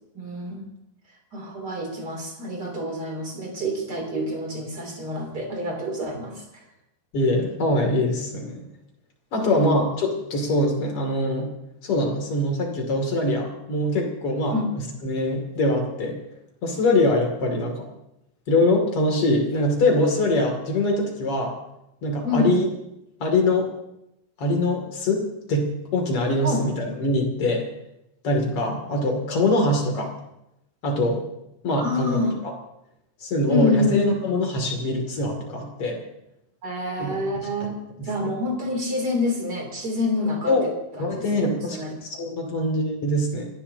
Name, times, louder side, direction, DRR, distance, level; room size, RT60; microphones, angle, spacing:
voice 1, 0.1-0.7 1.3-6.4 9.4-9.7 14.5-14.7 22.2-22.6 26.4-26.7 31.7-32.3 33.5-34.0 36.6-37.7 38.0-40.6 40.9-41.4 41.7-42.2, left 2 dB, 30° right, 1 dB, 2.1 m, -27 dB
voice 2, 7.1-8.6 9.3-11.5 11.8-16.2 16.6-17.9 18.5-21.5 22.0-22.7 23.2-23.7 24.4-27.7 28.2-30.1 30.8-31.2 31.6-32.5 33.2-36.0 37.0-37.2 38.0-38.3 40.5-40.6 41.0-43.5, left 1 dB, 40° left, 2 dB, 2.2 m, -23 dB
30.0 x 14.5 x 2.8 m, 0.86 s
omnidirectional pair, 5.9 m